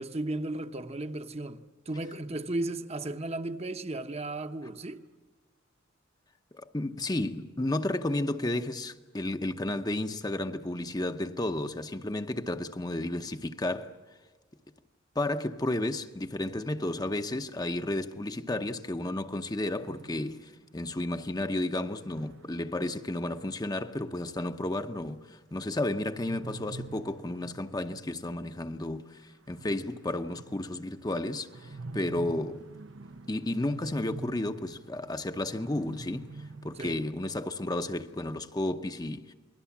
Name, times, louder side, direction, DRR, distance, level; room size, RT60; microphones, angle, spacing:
voice 1, 0.0-5.1 36.8-37.0, right 2 dB, 30° right, 1.0 m, -35 dB
voice 2, 6.5-14.0 15.1-32.7 33.3-36.3 36.6-39.3, left 1 dB, 20° left, 0.8 m, -32 dB
sound 1, 19.1-20.9 22.0-23.9 26.0-28.4 28.7-28.8 29.0-29.1 29.3-37.1, right 3 dB, 90° right, 0.9 m, -46 dB
28.5 x 21.0 x 7.2 m
head